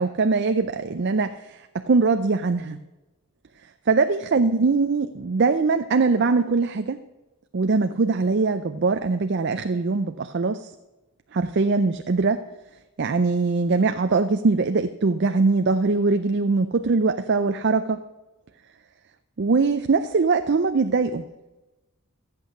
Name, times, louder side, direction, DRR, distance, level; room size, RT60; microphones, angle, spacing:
voice 1, 0.0-2.8 3.9-7.0 7.5-10.7 11.3-12.4 13.0-18.0 19.4-21.2, right 4 dB, 50° right, 8 dB, 0.5 m, -22 dB
14.0 x 8.4 x 6.5 m, 1.1 s
head